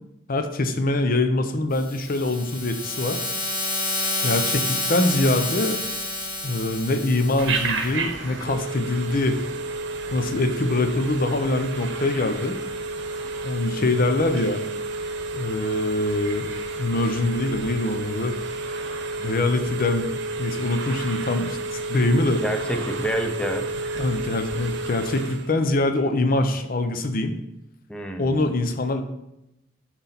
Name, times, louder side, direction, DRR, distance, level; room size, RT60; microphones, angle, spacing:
voice 1, 0.3-3.2 4.2-5.8 6.4-9.4 10.1-12.6 13.4-14.6 15.3-16.5 16.8-18.3 19.2-21.6 21.9-22.4 24.0-27.4 28.2-29.0, left 2 dB, 50° left, 8 dB, 0.6 m, -24 dB
sound 1, 1.7-7.9, left 2 dB, 25° left, 1.8 m, -29 dB
Telephone, 7.4-25.5, right 3 dB, 70° right, 0.9 m, -31 dB
voice 2, 22.4-23.6 27.9-28.5, equal, 5° left, 4 dB, 0.6 m, -28 dB
6.1 x 4.0 x 5.7 m, 0.87 s
head